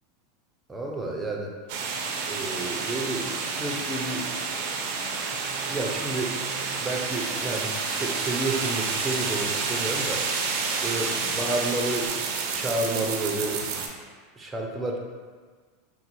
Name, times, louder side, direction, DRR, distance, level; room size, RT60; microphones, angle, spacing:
voice 1, 0.7-1.5 2.3-4.2 5.7-6.3 6.8-10.5 10.8-12.1 12.5-13.6 14.4-15.0, right 2 dB, 15° right, 0 dB, 0.5 m, -30 dB
sound 1, 1.7-13.9, right 5 dB, 65° right, 0.5 m, -29 dB
sound 2, 7.1-12.1, left 4 dB, 60° left, 0.6 m, -41 dB
4.9 x 2.0 x 3.0 m, 1.5 s
hypercardioid pair, 115°, 0 cm